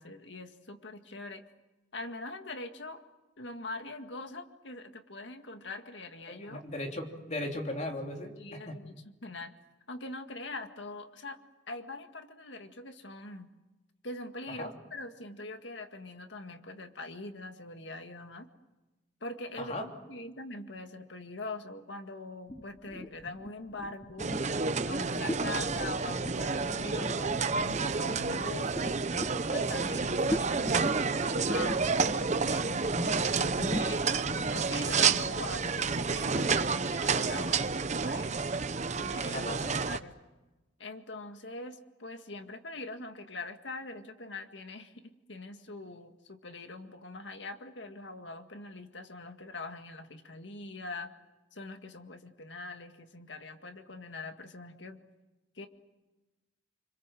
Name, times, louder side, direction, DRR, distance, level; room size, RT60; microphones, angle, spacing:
voice 1, 0.0-1.4 1.9-3.0 3.4-6.6 8.4-9.5 9.9-11.4 11.7-13.5 14.0-18.5 19.2-24.3 24.9-29.0 29.5-34.0 34.5-38.4 38.9-39.5 39.9-40.1 40.8-51.1 51.5-55.0 55.6-55.7, left 2 dB, 70° left, 6 dB, 2.0 m, -43 dB
voice 2, 6.3-8.7 14.6-14.7 19.6-19.9 39.3-39.7, left 1 dB, 40° left, 2 dB, 3.1 m, -37 dB
sound 1, 22.5-34.8, left 1 dB, 20° left, 1.0 m, -40 dB
sound 2, 24.2-40.0, right 4 dB, 40° right, 0.8 m, -30 dB
26.5 x 25.5 x 7.7 m, 1.1 s
head